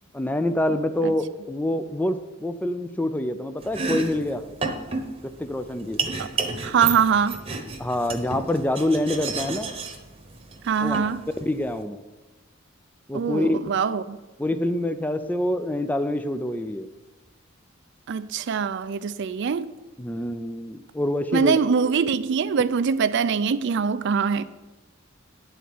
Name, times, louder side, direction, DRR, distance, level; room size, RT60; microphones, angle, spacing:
voice 1, 0.1-4.4 5.4-6.0 7.8-9.7 10.8-11.0 11.4-12.0 13.1-13.6 14.4-16.9 20.0-21.6, left 1 dB, 10° left, 0.4 m, -26 dB
Domestic sounds home sounds, 3.6-11.8, right 4 dB, 25° right, 1.0 m, -32 dB
voice 2, 6.6-7.4 10.6-11.2 13.1-14.2 18.1-19.7 21.3-24.4, right 6 dB, 60° right, 0.4 m, -23 dB
10.0 x 4.1 x 7.6 m
head